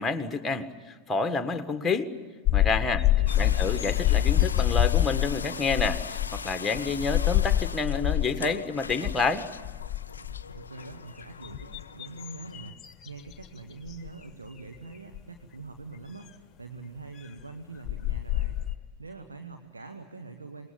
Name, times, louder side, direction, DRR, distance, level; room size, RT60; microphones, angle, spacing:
voice 1, 0.0-2.1 2.5-3.0 3.4-9.4, left 4 dB, 10° left, 9 dB, 1.7 m, -29 dB
sound 1, 2.5-8.5 8.8-9.2 9.6-10.6 11.2-13.5 13.9-14.1 15.1-15.2 17.4-17.5 17.8-18.7, left 14 dB, 25° left, 1.3 m, -26 dB
voice 2, 3.0-3.7 10.2-18.6 19.0-20.7, right 3 dB, 80° right, 6 dB, 1.6 m, -44 dB
sound 2, 3.3-12.7, left 5 dB, 70° left, 0.6 m, -41 dB
27.0 x 20.5 x 8.9 m, 1.5 s
figure-of-eight pair, 90°, 0 cm